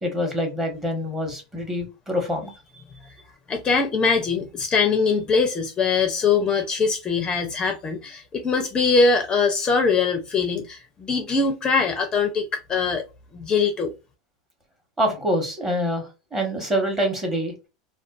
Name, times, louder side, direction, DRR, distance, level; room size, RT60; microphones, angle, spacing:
voice 1, 0.0-2.5 15.0-17.5, equal, 15° right, 1.0 m, -25 dB
voice 2, 3.5-13.0 13.3-13.9, left 4 dB, 25° left, 0.5 m, -22 dB
2.4 x 2.2 x 2.3 m
supercardioid pair, 120°, 3 cm